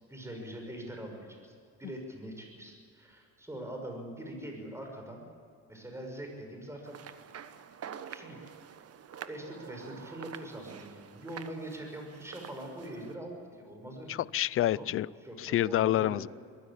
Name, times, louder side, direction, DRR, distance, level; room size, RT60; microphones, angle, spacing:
voice 1, 0.1-5.2 5.7-7.1 8.1-8.4 9.2-14.2 14.8-14.9 15.2-16.2, right 1 dB, 10° right, 2 dB, 5.8 m, -43 dB
sound 1, 6.8-13.2, right 8 dB, 45° right, 1.3 m, -47 dB
voice 2, 14.1-15.1 15.4-16.3, left 13 dB, 40° left, 23 dB, 0.4 m, -28 dB
23.0 x 15.5 x 8.5 m, 2.4 s
cardioid pair, 100°, 35 cm